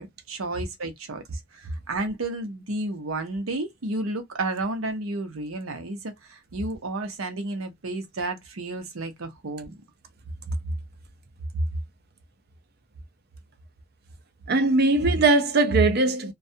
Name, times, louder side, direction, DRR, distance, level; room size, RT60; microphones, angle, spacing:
voice 1, 0.0-9.7, right 2 dB, 85° right, 0.8 m, -32 dB
voice 2, 14.5-16.3, right 2 dB, 50° right, 0.5 m, -20 dB
2.3 x 2.2 x 2.6 m
head